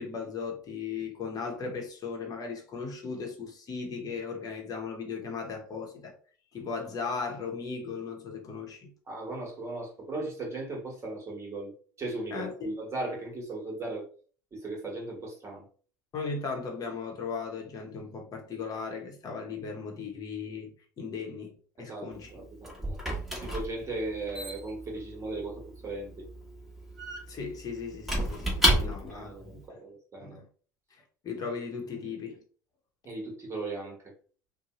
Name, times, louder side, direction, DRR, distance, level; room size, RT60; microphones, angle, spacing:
voice 1, 0.0-6.1 6.5-8.9 12.3-12.7 16.1-22.3 27.3-29.8 30.2-30.4 31.2-32.4, left 5 dB, 40° left, 1.0 m, -37 dB
voice 2, 9.1-11.7 12.0-14.1 14.5-15.6 21.8-23.0 23.4-26.3 28.8-30.4 33.0-34.1, right 2 dB, 30° right, 1.2 m, -37 dB
Squeak / Wood, 22.1-29.3, equal, ahead, 1.2 m, -32 dB
2.7 x 2.3 x 3.0 m
hypercardioid pair, 75°, 10 cm